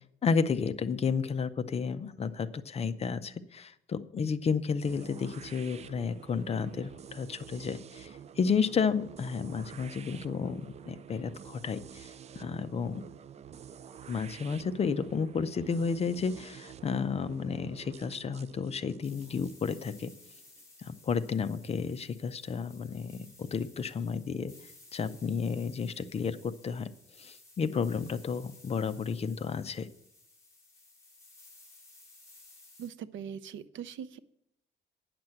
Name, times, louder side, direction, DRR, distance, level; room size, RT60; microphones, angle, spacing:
voice 1, 0.2-13.1 14.1-20.1 20.8-24.5 24.9-26.9 27.2-29.9, left 5 dB, 30° left, 12 dB, 0.5 m, -32 dB
sound 1, 4.8-20.6, right 8 dB, 35° right, 0.3 m, -49 dB
sound 2, 19.0-32.9, left 2 dB, 15° left, 2.7 m, -57 dB
voice 2, 32.8-34.2, right 8 dB, 75° right, 14 dB, 0.6 m, -41 dB
9.5 x 6.0 x 7.8 m, 0.78 s
cardioid pair, 170°, 20 cm